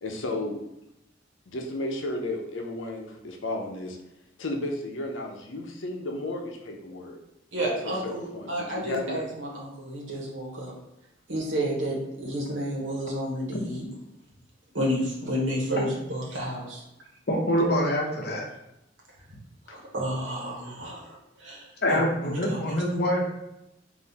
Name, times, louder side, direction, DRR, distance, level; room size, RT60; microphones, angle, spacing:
voice 1, 0.0-0.6 1.5-4.0 4.4-7.2 7.6-9.2 17.6-17.7 19.7-19.8 20.8-20.9, left 2 dB, 85° left, 2 dB, 0.7 m, -33 dB
voice 2, 7.5-10.7 11.3-13.9 14.7-16.8 19.7-22.6, equal, 75° right, -4 dB, 1.1 m, -31 dB
voice 3, 17.3-18.4 21.8-23.2, equal, 55° left, 0 dB, 0.9 m, -25 dB
3.9 x 2.6 x 4.1 m, 0.86 s
head